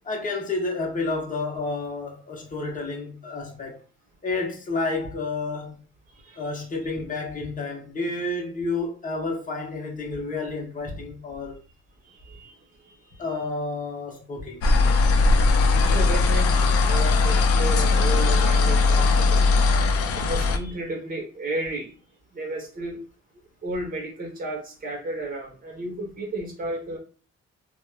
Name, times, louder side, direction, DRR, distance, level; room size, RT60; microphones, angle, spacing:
voice 1, 0.0-3.8 4.2-5.8 6.4-11.6 13.2-14.6 17.0-17.2, left 3 dB, 25° left, 0.8 m, -30 dB
voice 2, 6.1-6.5 6.8-6.9 12.0-13.5 15.9-19.5 20.1-21.9 22.3-23.0 23.6-27.0, right 2 dB, 30° right, 1.0 m, -33 dB
sound 1, 14.6-20.6, left 3 dB, 50° left, 0.4 m, -19 dB
2.8 x 2.2 x 2.3 m
cardioid pair, 90°, 30 cm